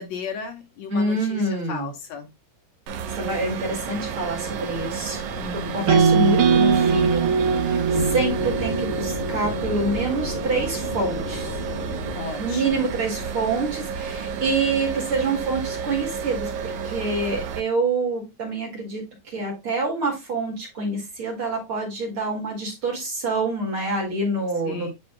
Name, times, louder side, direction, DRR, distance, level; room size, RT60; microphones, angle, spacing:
voice 1, 0.0-2.3 5.4-5.9 12.2-12.9 24.7-24.9, left 5 dB, 70° left, 2.3 m, -35 dB
voice 2, 0.9-1.9 3.2-5.2 5.5-7.3 7.6-11.6 12.4-19.0 19.3-24.9, right 2 dB, 50° right, 2.8 m, -26 dB
sound 1, 2.9-17.6, right 6 dB, 85° right, 2.4 m, -31 dB
sound 2, 5.9-10.0, right 5 dB, 70° right, 1.4 m, -21 dB
sound 3, 7.9-12.1, left 2 dB, 50° left, 0.8 m, -32 dB
9.6 x 5.1 x 2.2 m
omnidirectional pair, 3.4 m